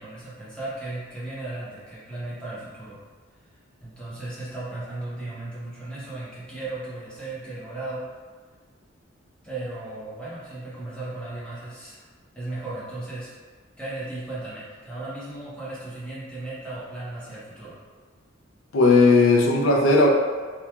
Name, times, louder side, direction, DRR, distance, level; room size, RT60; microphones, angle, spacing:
voice 1, 0.0-3.0 3.8-8.0 9.4-12.0 12.3-13.3 13.8-17.8, right 2 dB, 5° left, -10 dB, 0.7 m, -36 dB
voice 2, 18.7-20.1, left 3 dB, 75° left, 0 dB, 0.4 m, -16 dB
2.9 x 2.2 x 2.3 m, 1.5 s
head